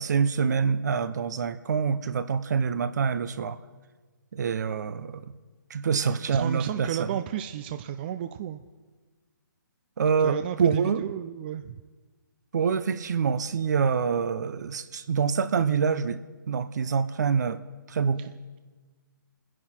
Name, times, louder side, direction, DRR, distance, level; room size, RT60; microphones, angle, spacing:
voice 1, 0.0-3.6 4.3-5.3 5.7-7.1 10.0-11.0 12.5-16.2 16.5-17.6 17.9-18.3, right 6 dB, 55° right, 13 dB, 0.9 m, -26 dB
voice 2, 6.0-8.6 10.2-11.8 18.2-18.3, right 10 dB, 30° right, 9 dB, 0.5 m, -33 dB
27.5 x 10.5 x 4.4 m, 1.3 s
hypercardioid pair, 145°, 11 cm